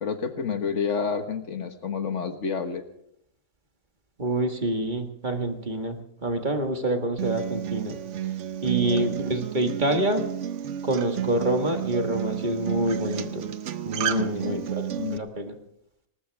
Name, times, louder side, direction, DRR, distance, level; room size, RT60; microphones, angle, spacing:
voice 1, 0.0-2.8 8.8-9.1 14.1-14.6 15.0-15.3, left 6 dB, 60° left, 8 dB, 1.6 m, -29 dB
voice 2, 4.2-8.0 8.6-10.3 10.8-13.5 13.8-14.6 15.1-15.5, right 1 dB, 35° right, 5 dB, 1.7 m, -27 dB
Acoustic guitar, 7.2-15.2, right 10 dB, 65° right, 1.1 m, -31 dB
20.0 x 19.5 x 3.5 m, 0.75 s
omnidirectional pair, 1.4 m